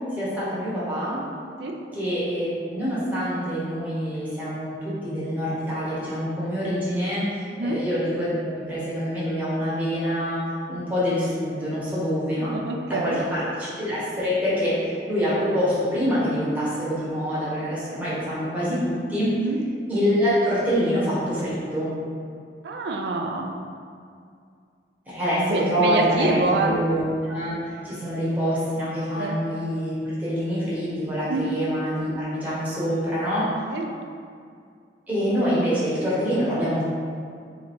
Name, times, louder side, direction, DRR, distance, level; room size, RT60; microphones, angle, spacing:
voice 1, 0.1-1.2 1.9-10.4 10.7-12.5 12.9-19.3 19.9-21.9 25.1-33.5 35.1-36.8, equal, 10° right, -9 dB, 1.4 m, -25 dB
voice 2, 7.5-7.8 12.4-13.2 19.4-19.6 22.6-23.6 25.3-26.8 29.2-29.4 31.2-31.5 33.7-33.9, right 3 dB, 65° right, 2 dB, 0.4 m, -26 dB
3.7 x 3.1 x 4.4 m, 2.3 s
head